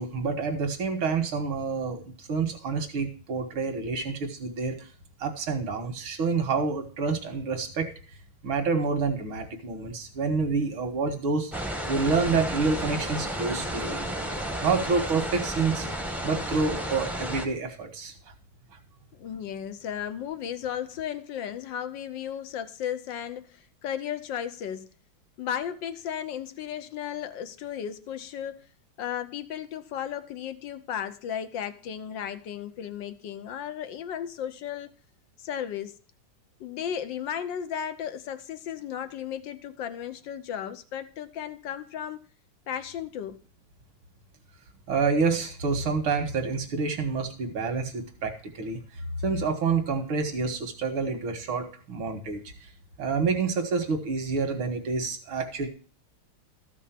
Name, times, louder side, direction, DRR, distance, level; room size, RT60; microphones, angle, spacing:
voice 1, 0.0-4.9 5.2-7.9 8.4-11.5 11.9-14.1 14.6-15.9 16.2-18.1 44.9-48.8 49.2-52.4 53.0-55.7, right 4 dB, 85° right, 2.5 m, -28 dB
sound 1, 11.5-17.5, right 1 dB, ahead, 0.8 m, -32 dB
voice 2, 19.2-24.9 25.4-28.7 29.0-34.9 35.4-36.0 36.6-42.2 42.7-43.4, left 9 dB, 70° left, 1.4 m, -35 dB
13.5 x 6.1 x 5.9 m
omnidirectional pair, 2.2 m